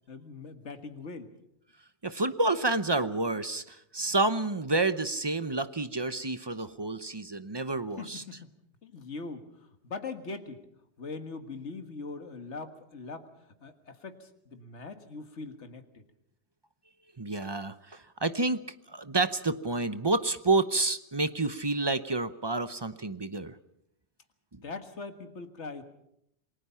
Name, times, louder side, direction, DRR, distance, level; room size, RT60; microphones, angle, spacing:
voice 1, 0.1-1.3 4.0-4.1 8.0-8.5 8.8-10.6 11.0-13.2 13.6-16.0 24.6-25.8, left 4 dB, 75° left, 7 dB, 2.0 m, -41 dB
voice 2, 2.0-8.2 17.2-23.6 24.5-24.6, right 2 dB, 25° right, 12 dB, 0.8 m, -29 dB
28.0 x 20.0 x 5.7 m, 0.76 s
omnidirectional pair, 1.2 m